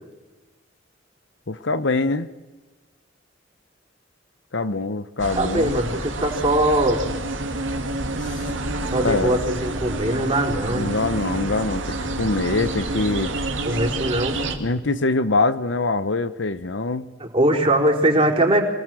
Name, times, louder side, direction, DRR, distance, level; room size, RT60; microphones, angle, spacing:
voice 1, 1.5-2.3 4.5-5.8 8.2-8.5 9.0-9.4 10.7-13.3 14.6-17.1, left 3 dB, 70° left, 13 dB, 1.0 m, -24 dB
sound 1, 5.2-14.5, right 2 dB, 85° right, 2.6 m, -28 dB
voice 2, 5.3-7.0 8.9-10.9 13.7-14.4 17.2-18.6, right 1 dB, 30° right, 0 dB, 4.2 m, -21 dB
26.5 x 19.0 x 7.7 m, 1.2 s
head